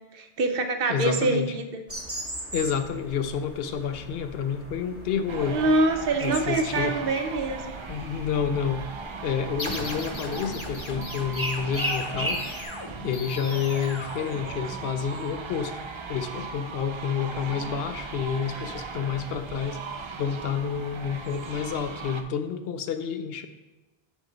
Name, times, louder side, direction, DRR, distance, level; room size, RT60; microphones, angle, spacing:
voice 1, 0.1-1.8 5.5-7.7, right 2 dB, 65° right, 6 dB, 0.8 m, -25 dB
voice 2, 0.9-1.5 2.5-5.6 6.2-7.0 7.9-8.8 9.2-12.7 13.0-15.8 16.1-19.8 20.2-23.5, left 7 dB, 75° left, 9 dB, 0.8 m, -29 dB
sound 1, 1.9-12.6, right 1 dB, 15° right, 0.8 m, -37 dB
sound 2, 5.3-22.2, right 4 dB, 45° right, 0.3 m, -38 dB
sound 3, 9.6-15.0, left 1 dB, 30° left, 0.8 m, -38 dB
7.3 x 3.8 x 4.9 m, 1.1 s
omnidirectional pair, 1.0 m